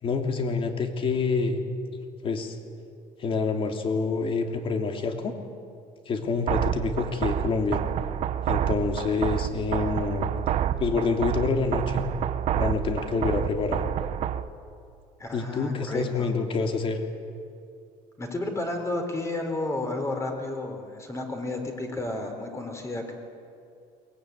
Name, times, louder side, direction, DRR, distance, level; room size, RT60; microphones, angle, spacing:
voice 1, 0.0-1.6 2.2-2.5 3.2-5.3 6.1-7.8 8.5-10.3 10.8-12.0 12.5-13.8 15.3-17.0, left 4 dB, 35° left, 4 dB, 3.0 m, -27 dB
sound 1, 6.5-14.5, right 10 dB, 50° right, 1.1 m, -28 dB
voice 2, 15.2-16.3 18.2-23.1, left 2 dB, 20° left, 4 dB, 4.1 m, -32 dB
22.5 x 20.5 x 9.5 m, 2.5 s
cardioid pair, 130°, 15 cm